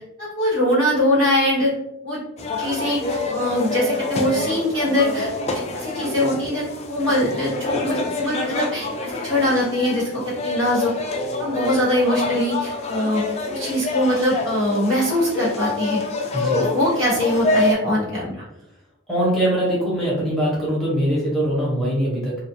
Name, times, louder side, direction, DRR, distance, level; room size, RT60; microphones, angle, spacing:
voice 1, 0.2-1.7 2.0-2.2 2.6-5.3 5.7-10.9 11.4-13.2 13.5-16.0 16.4-18.4, left 1 dB, 65° right, -7 dB, 1.2 m, -22 dB
sound 1, 2.4-17.7, left 2 dB, 30° left, 0.3 m, -27 dB
voice 2, 19.1-22.4, right 1 dB, ahead, -7 dB, 0.9 m, -22 dB
2.4 x 2.3 x 2.7 m, 0.89 s
head